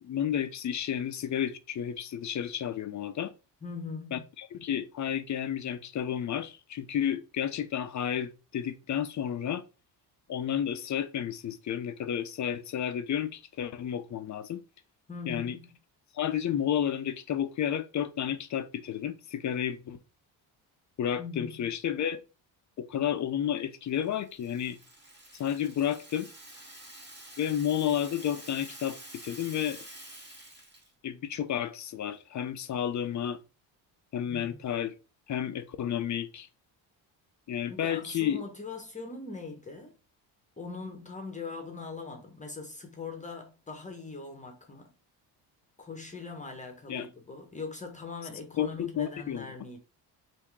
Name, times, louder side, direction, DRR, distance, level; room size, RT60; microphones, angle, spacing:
voice 1, 0.0-3.3 4.1-9.6 10.3-14.6 15.3-15.6 16.1-20.0 21.0-22.2 22.8-24.8 25.3-26.3 27.4-29.0 29.2-29.8 31.0-33.4 34.1-34.9 35.3-36.5 37.5-38.4 46.9-47.1 48.6-49.5, left 9 dB, 40° left, 0.6 m, -31 dB
voice 2, 3.6-4.2 15.1-15.7 21.2-21.7 37.7-39.9 40.6-44.9 45.8-49.8, left 4 dB, 15° left, 0.9 m, -41 dB
Rattle (instrument), 24.0-30.9, right 1 dB, 25° right, 1.8 m, -48 dB
3.5 x 2.7 x 4.5 m
cardioid pair, 105°, 43 cm